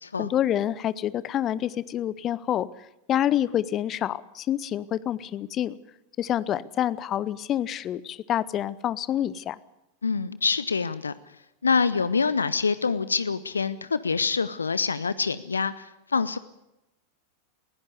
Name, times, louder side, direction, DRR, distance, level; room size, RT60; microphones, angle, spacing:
voice 1, 0.2-5.8 6.2-9.6, left 11 dB, 30° left, 19 dB, 0.7 m, -27 dB
voice 2, 10.0-11.1 11.6-16.4, left 5 dB, 75° left, 16 dB, 0.6 m, -26 dB
20.0 x 16.0 x 8.2 m, 0.91 s
figure-of-eight pair, 90°, 0 cm